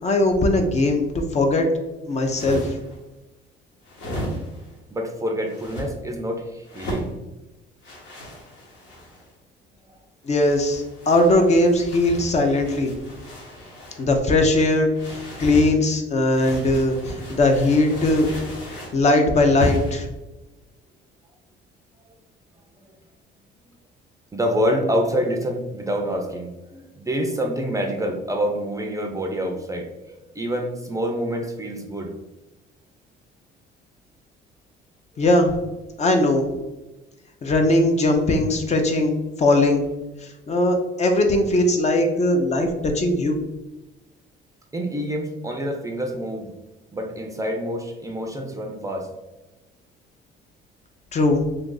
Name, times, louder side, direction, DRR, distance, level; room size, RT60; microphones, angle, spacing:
voice 1, 0.0-1.7 2.1-2.7 10.2-12.9 14.0-14.9 15.4-18.3 18.9-20.1 35.2-35.5 36.0-36.5 37.4-39.8 40.5-43.4 51.1-51.4, left 2 dB, 35° left, 4 dB, 0.5 m, -19 dB
sound 1, 2.1-3.0 3.8-4.7 5.5-5.9 6.6-7.1 7.8-9.3 10.3-14.1 14.9-15.7 16.3-19.0 19.6-20.1, equal, 75° left, 1.2 m, -33 dB
voice 2, 4.9-7.1 24.3-32.1 44.7-46.5 46.9-49.1, equal, 15° right, 3 dB, 0.4 m, -27 dB
2.8 x 2.5 x 3.7 m, 1.0 s
cardioid pair, 105°, 20 cm